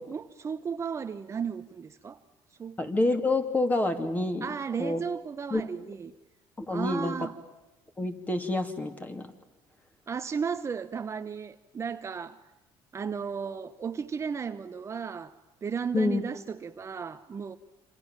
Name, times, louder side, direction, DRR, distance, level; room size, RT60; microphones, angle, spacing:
voice 1, 0.1-2.2 2.6-2.8 4.4-6.1 6.7-7.4 10.1-12.4 12.9-17.6, right 6 dB, 30° right, 1.0 m, -34 dB
voice 2, 2.8-4.5 4.8-5.0 5.5-5.6 6.6-7.3 8.0-9.3 15.9-16.2, left 2 dB, 15° left, 3.1 m, -27 dB
27.5 x 27.0 x 7.5 m
cardioid pair, 120°, 10 cm